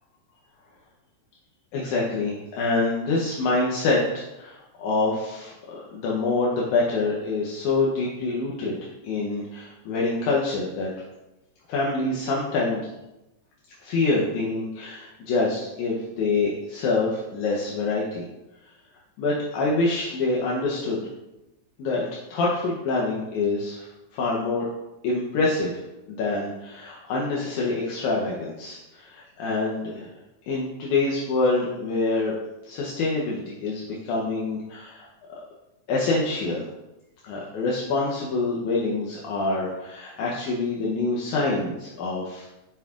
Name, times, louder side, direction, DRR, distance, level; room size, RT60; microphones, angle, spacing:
voice 1, 1.7-10.9 11.7-12.8 13.8-18.3 19.2-21.0 21.8-22.0 22.3-24.7 25.0-30.1 30.5-32.4 32.6-35.1 35.9-36.7 37.2-42.4, left 3 dB, 80° left, -4 dB, 2.3 m, -26 dB
7.0 x 5.8 x 2.4 m, 0.94 s
omnidirectional pair, 3.4 m